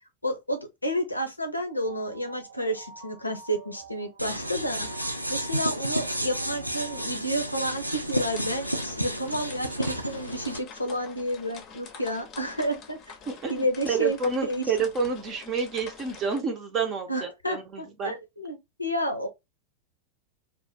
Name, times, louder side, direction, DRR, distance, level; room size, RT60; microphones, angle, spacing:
voice 1, 0.2-13.2 13.5-14.2 14.5-14.6 17.1-19.3, equal, 85° left, 0.6 m, -31 dB
sound 1, 1.8-7.0, right 4 dB, 70° right, 1.1 m, -48 dB
sound 2, 4.2-10.6, equal, 90° right, 0.3 m, -31 dB
sound 3, 7.7-16.4, left 5 dB, 35° left, 0.6 m, -47 dB
voice 2, 13.3-18.1, right 5 dB, 30° right, 0.7 m, -29 dB
2.6 x 2.1 x 3.1 m
figure-of-eight pair, 90°, 0 cm